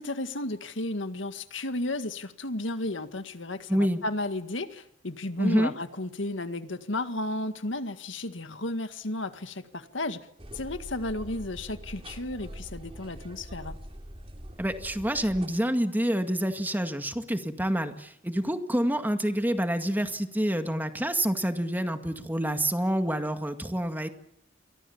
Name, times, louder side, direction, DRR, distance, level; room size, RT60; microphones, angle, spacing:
voice 1, 0.0-10.2 10.5-13.8, left 2 dB, 90° left, 9 dB, 1.9 m, -33 dB
voice 2, 3.7-4.0 5.4-5.7 14.6-24.1, right 1 dB, 10° right, 7 dB, 2.0 m, -27 dB
sound 1, 10.4-15.5, equal, 30° right, 3.6 m, -43 dB
28.5 x 24.0 x 7.3 m, 0.79 s
head